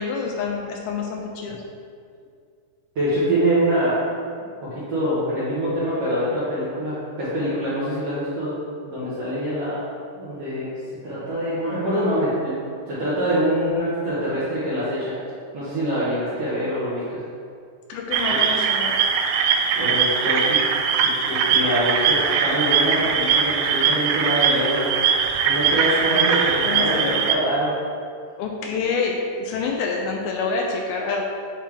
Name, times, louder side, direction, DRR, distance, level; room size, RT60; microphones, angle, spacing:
voice 1, 0.0-1.6 17.9-19.0 26.6-27.2 28.4-31.2, left 4 dB, 85° left, 1 dB, 2.2 m, -27 dB
voice 2, 2.9-4.0 4.6-9.8 10.2-10.7 11.0-12.6 12.8-15.1 15.5-17.0 18.3-18.4 19.8-20.6 21.0-24.9 25.4-27.7, equal, 70° right, -11 dB, 1.4 m, -24 dB
sound 1, 18.1-27.3, right 6 dB, 85° right, 2.0 m, -21 dB
8.7 x 3.4 x 3.4 m, 2.3 s
omnidirectional pair, 4.7 m